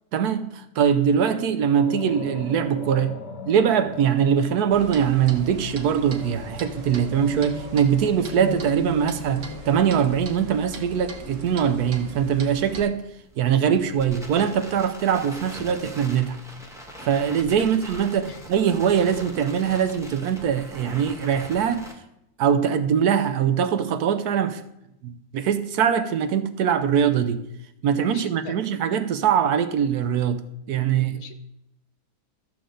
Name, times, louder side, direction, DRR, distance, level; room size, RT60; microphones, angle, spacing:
voice 1, 0.1-3.2 3.5-13.0 13.4-16.4 17.0-21.9 22.4-24.6 25.0-27.4 27.8-30.4 30.7-31.2, right 8 dB, 70° right, 1.1 m, -22 dB
sound 1, 1.7-11.8, left 4 dB, 85° left, 1.7 m, -39 dB
Clock, 4.7-12.8, right 1 dB, 50° right, 1.3 m, -40 dB
Crackle, 12.7-21.9, equal, ahead, 0.9 m, -42 dB
voice 2, 28.0-28.5 31.1-31.4, left 8 dB, 65° left, 1.2 m, -40 dB
13.0 x 6.8 x 3.8 m
omnidirectional pair, 1.8 m